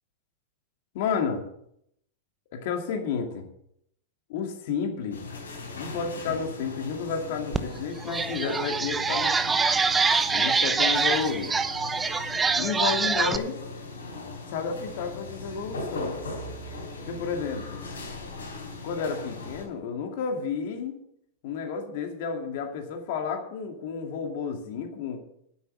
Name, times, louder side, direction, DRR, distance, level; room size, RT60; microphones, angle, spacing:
voice 1, 0.9-1.4 2.5-3.5 4.3-5.2 5.8-9.7 10.3-11.5 12.5-13.6 14.5-16.2 17.1-17.8 18.8-21.0 21.4-25.2, left 6 dB, 60° left, 4 dB, 2.4 m, -31 dB
sound 1, 5.1-19.6, left 2 dB, 80° left, 3.9 m, -39 dB
sound 2, 7.5-7.6 8.0-13.4, right 4 dB, 15° right, 0.8 m, -25 dB
9.8 x 8.0 x 7.6 m, 0.74 s
hypercardioid pair, 100°, 0 cm